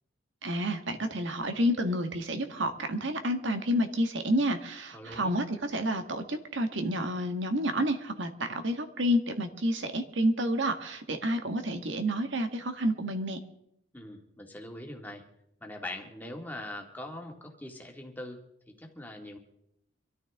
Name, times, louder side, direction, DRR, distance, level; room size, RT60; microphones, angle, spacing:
voice 1, 0.4-13.4, equal, 75° right, 6 dB, 1.5 m, -29 dB
voice 2, 4.9-5.4 13.9-15.2 15.6-18.4 18.7-19.4, left 1 dB, 10° left, 2 dB, 2.0 m, -42 dB
25.0 x 13.5 x 3.6 m, 0.76 s
head